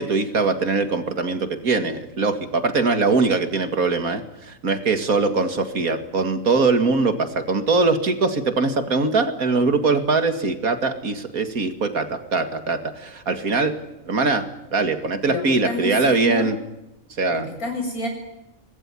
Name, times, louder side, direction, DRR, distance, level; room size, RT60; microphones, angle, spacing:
voice 1, 0.0-13.8 14.1-14.5 14.7-16.6 17.2-17.5, right 3 dB, 85° right, 8 dB, 2.6 m, -22 dB
voice 2, 15.3-16.5 17.3-18.1, left 2 dB, 85° left, 3 dB, 7.7 m, -28 dB
24.5 x 20.0 x 9.9 m, 0.93 s
omnidirectional pair, 1.5 m